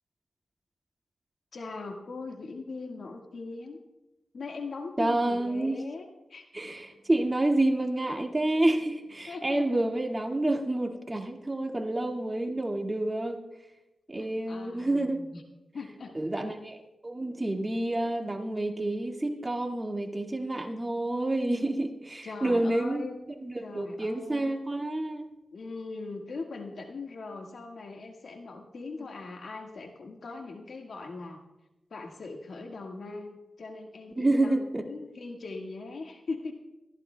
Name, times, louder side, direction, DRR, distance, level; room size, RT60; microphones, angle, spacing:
voice 1, 1.5-3.8 4.3-6.5 9.3-9.8 14.2-15.4 15.7-16.2 22.2-23.2 23.6-24.5 25.5-31.4 31.9-36.5, left 3 dB, 70° left, 2 dB, 1.7 m, -40 dB
voice 2, 5.0-5.8 6.5-13.4 14.1-15.2 16.1-23.0 23.4-25.3 34.2-34.9, right 1 dB, 25° right, 3 dB, 1.9 m, -29 dB
25.0 x 14.5 x 2.3 m, 1.0 s
cardioid pair, 50°, 0 cm